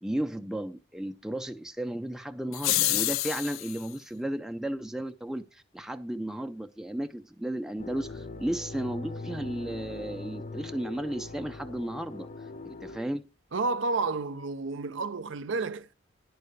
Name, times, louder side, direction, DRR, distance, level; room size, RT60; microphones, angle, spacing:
voice 1, 0.0-12.3 12.6-13.2, right 1 dB, ahead, 0.4 m, -34 dB
sound 1, 2.5-3.8, left 16 dB, 80° left, 0.4 m, -28 dB
sound 2, 7.8-13.0, left 2 dB, 35° left, 0.6 m, -41 dB
voice 2, 13.5-15.9, right 3 dB, 65° right, 0.6 m, -30 dB
11.0 x 4.7 x 6.6 m
head